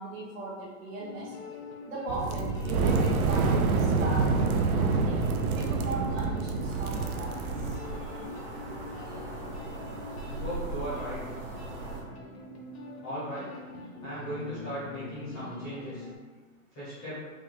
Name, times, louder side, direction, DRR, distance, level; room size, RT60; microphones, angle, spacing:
voice 1, 0.0-1.3 1.9-5.2 5.5-7.8 13.9-14.1 15.0-15.1, right 2 dB, 60° right, -9 dB, 1.2 m, -38 dB
sound 1, 1.0-16.1, left 3 dB, 45° left, 0.7 m, -45 dB
sound 2, 2.1-7.7, right 4 dB, 75° right, 0.7 m, -27 dB
sound 3, 6.6-12.0, right 2 dB, 40° right, 0.9 m, -39 dB
voice 2, 10.2-11.4 13.0-13.6 14.0-16.1 16.7-17.2, equal, 10° left, -12 dB, 0.6 m, -37 dB
4.9 x 2.3 x 3.6 m, 1.4 s
hypercardioid pair, 180°, 44 cm